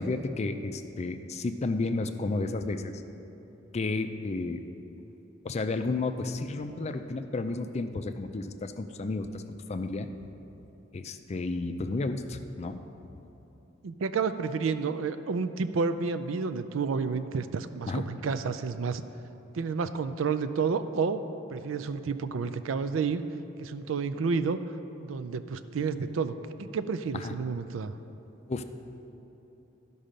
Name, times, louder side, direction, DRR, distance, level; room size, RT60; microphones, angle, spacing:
voice 1, 0.0-3.0 3.7-4.6 5.4-9.4 9.7-10.1 10.9-12.8 17.9-18.0 27.2-27.3 28.5-28.6, left 3 dB, 35° left, 8 dB, 0.4 m, -32 dB
voice 2, 13.8-19.0 19.5-21.2 21.5-23.2 23.6-24.6 25.0-27.9, right 5 dB, 85° right, 11 dB, 0.4 m, -30 dB
13.5 x 5.5 x 5.1 m, 3.0 s
head